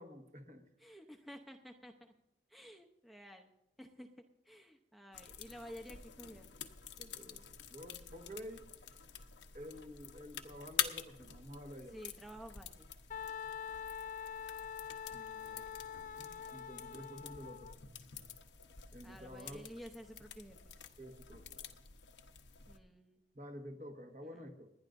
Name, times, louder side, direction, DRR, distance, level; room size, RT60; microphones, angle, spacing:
voice 1, 0.0-0.6 7.0-8.7 9.5-12.0 15.1-15.8 16.2-17.7 18.9-19.7 21.0-21.6 23.3-24.7, equal, 45° right, 4 dB, 1.5 m, -50 dB
voice 2, 0.8-2.1 2.5-3.5 3.8-4.1 4.4-6.5 11.9-12.9 19.0-20.6 22.7-23.2 24.2-24.3, equal, ahead, 3 dB, 0.7 m, -52 dB
sound 1, 5.1-22.8, left 9 dB, 85° left, 1.0 m, -47 dB
Wind instrument woodwind instrument, 13.1-17.7, left 8 dB, 45° left, 0.4 m, -45 dB
30.0 x 10.5 x 2.6 m, 0.84 s
head